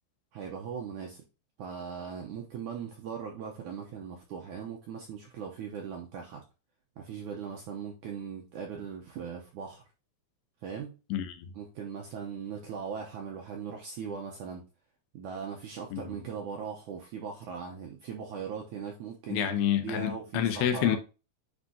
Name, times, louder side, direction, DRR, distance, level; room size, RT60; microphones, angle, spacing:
voice 1, 0.3-1.2 1.6-6.4 7.0-9.8 10.6-10.9 11.6-14.6 15.1-19.5 19.8-21.0, right 6 dB, 80° right, 1.8 m, -39 dB
voice 2, 11.1-11.5 15.9-16.2 19.3-21.0, left 10 dB, 80° left, 2.9 m, -28 dB
9.8 x 4.3 x 2.8 m
omnidirectional pair, 4.6 m